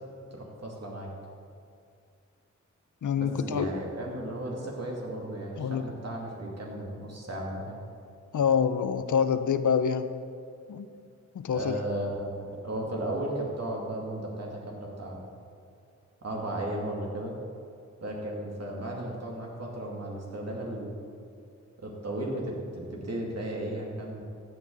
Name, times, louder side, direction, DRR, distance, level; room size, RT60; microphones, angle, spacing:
voice 1, 0.3-1.1 3.2-7.8 11.5-15.2 16.2-17.3 18.0-21.0 21.8-24.2, right 1 dB, 60° right, -2 dB, 2.5 m, -35 dB
voice 2, 3.0-3.7 5.6-5.8 8.3-10.1 10.7-10.9 11.3-11.8, left 7 dB, 85° left, 11 dB, 0.6 m, -26 dB
14.0 x 8.9 x 4.0 m, 2.4 s
cardioid pair, 60°, 30 cm